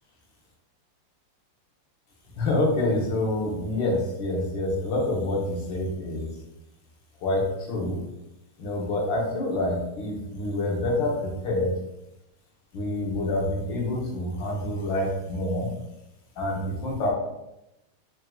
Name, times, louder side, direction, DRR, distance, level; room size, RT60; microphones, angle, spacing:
voice 1, 2.4-6.3 7.2-8.0 8.6-11.8 12.7-15.7 16.4-17.1, left 1 dB, 65° left, -2 dB, 1.6 m, -27 dB
4.5 x 3.6 x 2.3 m, 0.89 s
omnidirectional pair, 2.4 m